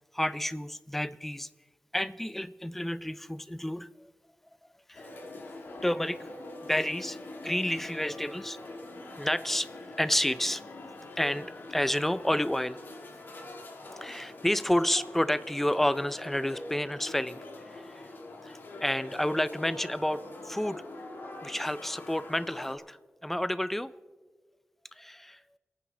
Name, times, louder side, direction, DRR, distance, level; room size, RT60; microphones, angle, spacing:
voice 1, 0.1-1.5 1.9-3.9 4.9-5.3 5.8-6.3 6.6-8.6 9.2-9.7 10.0-10.6 11.2-12.8 14.0-17.4 17.6-18.1 18.4-20.8 21.4-23.9 25.0-25.4, left 1 dB, 5° left, 15 dB, 0.5 m, -30 dB
sound 1, 4.9-22.8, left 2 dB, 65° left, 1.9 m, -44 dB
27.5 x 9.3 x 3.7 m, 1.4 s
wide cardioid pair, 115°, 4 cm